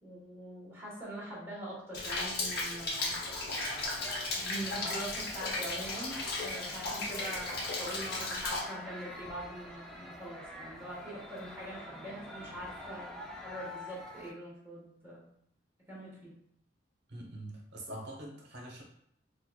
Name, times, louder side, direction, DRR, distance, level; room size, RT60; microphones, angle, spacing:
voice 1, 0.0-3.2 4.3-15.3 15.9-16.3, right 1 dB, 15° right, -7 dB, 1.2 m, -43 dB
Rain, 1.9-8.6, left 2 dB, 55° left, 0.8 m, -35 dB
sound 1, 3.2-14.3, left 1 dB, 5° left, 0.4 m, -47 dB
voice 2, 17.1-18.8, right 1 dB, 65° right, -1 dB, 0.9 m, -44 dB
4.4 x 2.5 x 2.2 m, 0.72 s
head